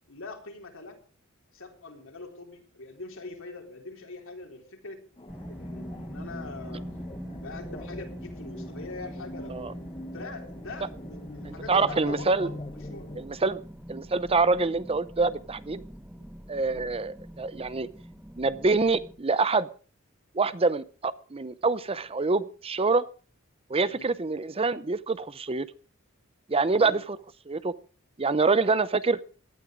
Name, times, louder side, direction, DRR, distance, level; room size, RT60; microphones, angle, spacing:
voice 1, 0.1-1.0 1.5-5.0 5.5-6.9 7.3-9.6 10.1-13.5 16.1-16.3 16.6-16.9 23.9-24.1 26.7-27.0 28.6-28.8, left 3 dB, 65° left, 3 dB, 3.8 m, -43 dB
sound 1, 5.2-13.2, left 1 dB, 25° left, 0.9 m, -43 dB
sound 2, 5.3-19.2, equal, 5° right, 1.2 m, -43 dB
voice 2, 11.4-12.5 13.2-13.6 13.9-15.8 16.5-17.9 18.4-19.7 20.3-23.0 23.7-25.7 26.5-27.2 27.5-27.7 28.2-29.2, right 3 dB, 25° right, 16 dB, 0.6 m, -26 dB
17.5 x 12.5 x 5.1 m, 0.39 s
head